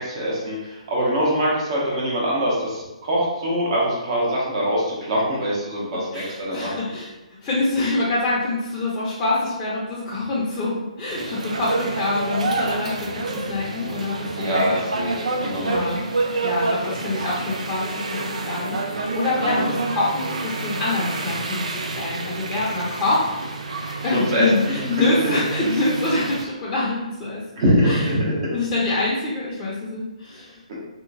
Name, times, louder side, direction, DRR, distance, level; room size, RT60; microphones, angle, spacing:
voice 1, 0.0-6.7 14.4-15.9 19.3-19.7 24.0-24.7 27.6-28.3, equal, 50° right, -4 dB, 1.0 m, -23 dB
voice 2, 6.1-7.1 7.4-14.7 15.6-16.0 16.4-23.2 24.0-27.4 27.8-28.0 28.5-30.6, left 2 dB, 20° left, -7 dB, 0.6 m, -25 dB
sound 1, 11.1-26.4, right 3 dB, 80° right, 0.4 m, -28 dB
2.9 x 2.2 x 2.5 m, 1.0 s
hypercardioid pair, 140°, 4 cm